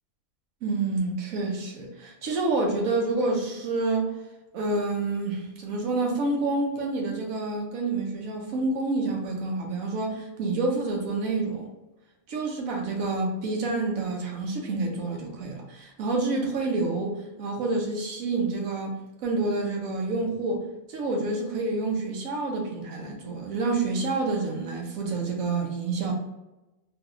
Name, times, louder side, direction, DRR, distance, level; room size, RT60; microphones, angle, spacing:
voice 1, 0.6-4.1 4.5-11.7 12.3-20.6 20.9-26.1, right 3 dB, 90° right, 1 dB, 1.2 m, -28 dB
3.4 x 2.6 x 2.4 m, 1.0 s
omnidirectional pair, 1.4 m